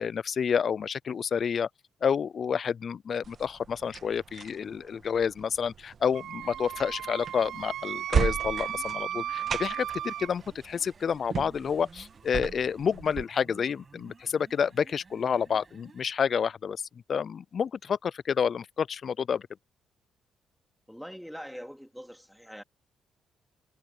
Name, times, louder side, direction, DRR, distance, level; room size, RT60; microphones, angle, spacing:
voice 1, 0.0-1.7 2.0-16.8 17.1-19.4, left 7 dB, 50° left, 0.3 m, -29 dB
sound 1, 3.2-13.2, right 7 dB, 50° right, 1.6 m, -36 dB
Wind instrument woodwind instrument, 6.1-10.3, right 11 dB, 75° right, 0.4 m, -35 dB
sound 2, 6.3-16.1, right 4 dB, 35° right, 7.5 m, -55 dB
voice 2, 20.9-22.6, equal, ahead, 2.9 m, -43 dB
cardioid pair, 90°, 0 cm